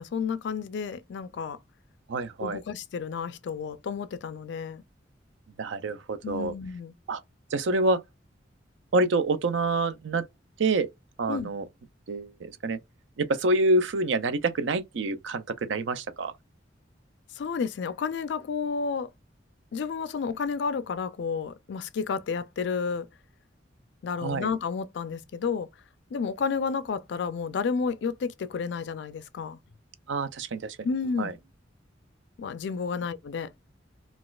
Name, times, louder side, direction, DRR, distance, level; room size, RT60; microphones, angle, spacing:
voice 1, 0.0-1.6 2.4-4.8 6.2-6.9 11.3-11.5 17.3-19.1 19.7-23.1 24.0-25.7 26.1-29.6 30.8-31.3 32.4-33.5, left 5 dB, 65° left, 0.3 m, -31 dB
voice 2, 2.1-2.6 5.6-6.5 7.1-7.2 7.5-8.0 8.9-10.2 10.6-10.9 11.2-11.6 12.1-12.8 13.2-16.3 24.2-24.5 30.1-30.8 31.2-31.3, right 2 dB, 75° right, 0.4 m, -27 dB
3.9 x 2.4 x 2.3 m
head